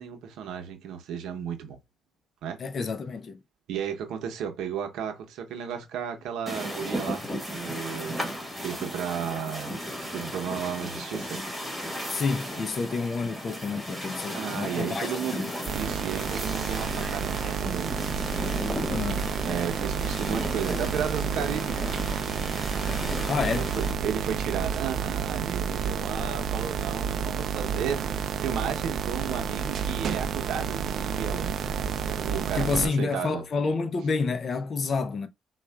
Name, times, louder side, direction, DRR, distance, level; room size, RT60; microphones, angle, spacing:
voice 1, 0.0-1.8 2.4-2.6 3.7-7.2 7.5-8.2 8.6-9.7 10.1-11.4 14.3-15.4 15.7-18.0 19.4-22.4 23.5-31.6 32.2-33.4, right 8 dB, 85° right, 0.8 m, -34 dB
voice 2, 2.6-3.4 12.1-15.5 18.9-19.3 23.3-23.7 32.6-35.3, left 4 dB, 50° left, 0.5 m, -29 dB
sound 1, 6.5-23.9, equal, 5° right, 1.7 m, -35 dB
sound 2, 15.7-32.9, right 7 dB, 60° right, 0.4 m, -30 dB
4.2 x 2.3 x 2.3 m
cardioid pair, 90°, 0 cm